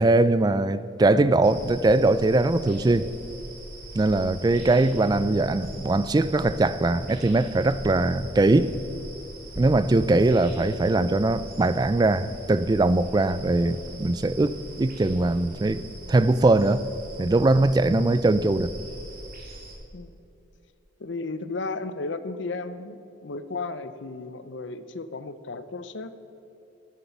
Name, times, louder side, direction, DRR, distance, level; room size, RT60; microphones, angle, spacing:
voice 1, 0.0-3.1 3.9-8.7 9.6-15.8 16.1-16.8 17.2-18.7, right 2 dB, 20° right, 0.3 m, -21 dB
sound 1, 1.4-19.8, right 1 dB, 50° right, 2.0 m, -41 dB
voice 2, 21.0-26.1, left 3 dB, 70° left, 0.6 m, -34 dB
10.0 x 9.5 x 6.0 m
head